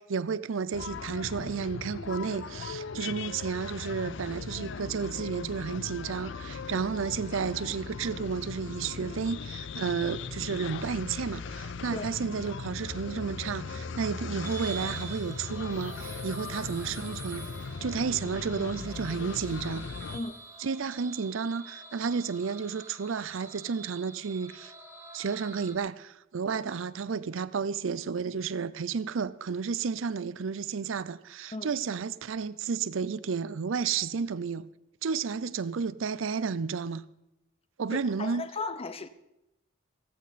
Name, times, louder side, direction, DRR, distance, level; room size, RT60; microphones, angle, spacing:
voice 1, 0.0-17.5 17.8-19.9 20.6-24.7 25.1-34.7 35.0-37.0 37.8-38.5, right 5 dB, 75° right, 0.5 m, -32 dB
sound 1, 0.7-20.2, left 5 dB, 65° left, 0.5 m, -39 dB
sound 2, 14.4-25.7, right 5 dB, 15° right, 1.5 m, -46 dB
voice 2, 37.9-39.1, left 3 dB, 30° left, 0.8 m, -36 dB
15.5 x 15.0 x 4.1 m
head